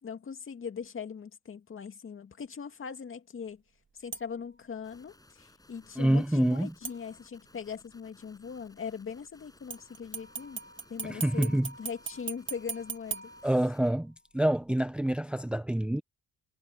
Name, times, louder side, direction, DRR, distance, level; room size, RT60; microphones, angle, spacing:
voice 1, 0.0-3.6 4.0-10.6 10.9-13.3, left 6 dB, 45° left, 2.4 m, -40 dB
sound 1, 4.1-4.6 6.8-7.6 9.7-14.1 14.5-14.6, right 5 dB, 40° right, 2.4 m, -41 dB
sound 2, 4.8-13.9, left 2 dB, 10° left, 7.5 m, -60 dB
voice 2, 6.0-6.7 11.0-11.7 13.4-16.0, right 1 dB, 5° right, 0.6 m, -27 dB
cardioid pair, 90°, 30 cm